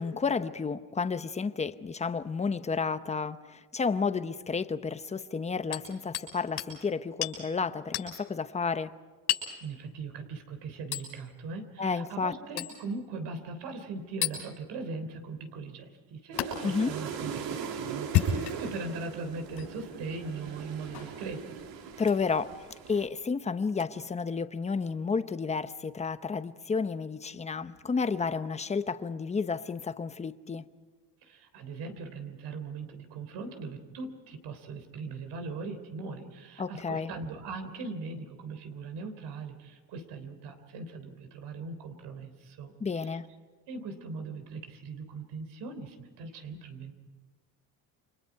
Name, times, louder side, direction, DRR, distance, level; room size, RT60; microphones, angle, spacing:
voice 1, 0.0-8.9 11.8-12.7 16.6-16.9 22.0-30.6 36.6-37.1 42.8-43.3, left 5 dB, 15° left, 0.8 m, -31 dB
Hammer, 5.7-6.3 6.6-6.7 7.2-7.4 7.9-8.1 9.3-9.6 10.9-11.1 12.6-12.8 14.2-14.4 16.4-16.5 18.0-18.8 19.5-19.7 20.9-21.1 22.0-22.2 23.8-23.9, left 10 dB, 90° left, 6.6 m, -30 dB
voice 2, 9.6-21.6 31.2-43.2 43.7-46.9, right 4 dB, 90° right, 3.4 m, -40 dB
sound 1, 16.3-23.1, right 6 dB, 65° right, 2.7 m, -40 dB
29.5 x 26.0 x 4.7 m
cardioid pair, 155°, 39 cm